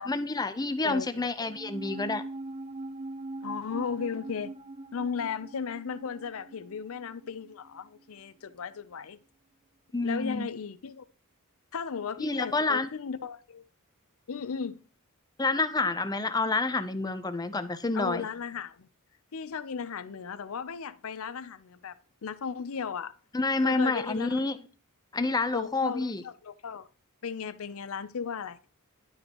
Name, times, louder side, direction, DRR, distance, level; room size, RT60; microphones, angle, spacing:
voice 1, 0.0-2.2 9.9-10.5 12.2-12.9 15.4-18.3 23.3-24.6 25.1-26.2, left 3 dB, 20° left, 0.6 m, -28 dB
voice 2, 0.8-1.5 3.4-4.5 4.9-9.2 10.0-11.0 11.7-13.6 14.3-14.8 17.9-18.9 19.3-21.9 22.2-23.1 23.6-24.4 25.5-26.9 27.2-28.6, left 6 dB, 70° left, 0.6 m, -36 dB
sound 1, 1.4-8.0 8.3-8.4, right 2 dB, 25° right, 0.5 m, -42 dB
11.5 x 5.2 x 2.9 m
head